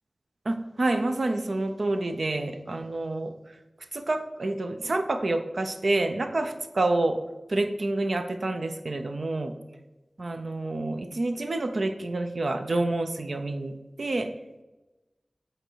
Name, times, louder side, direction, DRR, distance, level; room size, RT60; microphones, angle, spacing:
voice 1, 0.4-3.3 3.9-7.2 7.5-9.5 10.2-14.3, right 2 dB, 70° right, 8 dB, 0.6 m, -28 dB
7.8 x 4.5 x 4.6 m, 1.1 s
wide cardioid pair, 60°, 0 cm